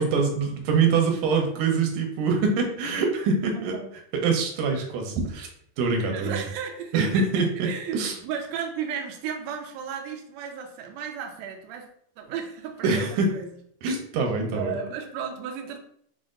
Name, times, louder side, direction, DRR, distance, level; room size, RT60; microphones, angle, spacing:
voice 1, 0.0-3.8 4.1-5.5 5.8-6.4 6.9-7.5 7.9-8.2 12.8-13.3 13.8-14.7, right 4 dB, 90° right, 2 dB, 2.3 m, -24 dB
voice 2, 3.5-3.9 6.0-11.9 12.2-13.5 14.5-15.8, right 7 dB, 75° right, 2 dB, 1.7 m, -34 dB
6.3 x 2.1 x 3.7 m, 0.63 s
omnidirectional pair, 3.5 m